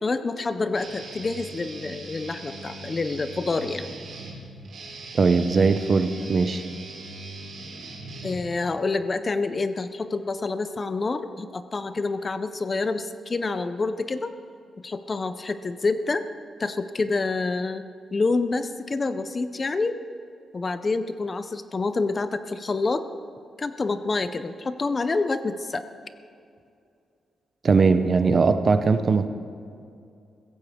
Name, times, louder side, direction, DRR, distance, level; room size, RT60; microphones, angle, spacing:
voice 1, 0.0-3.9 8.2-14.3 14.8-16.2 16.6-17.8 18.1-20.0 20.5-23.0 23.6-25.8, left 3 dB, 25° left, 11 dB, 0.4 m, -27 dB
Guitar, 0.7-8.8, right 2 dB, 60° right, 2.2 m, -40 dB
voice 2, 5.1-6.6 27.6-29.3, right 4 dB, 35° right, 10 dB, 0.6 m, -20 dB
16.0 x 15.0 x 3.6 m, 2.4 s
wide cardioid pair, 170°, 0 cm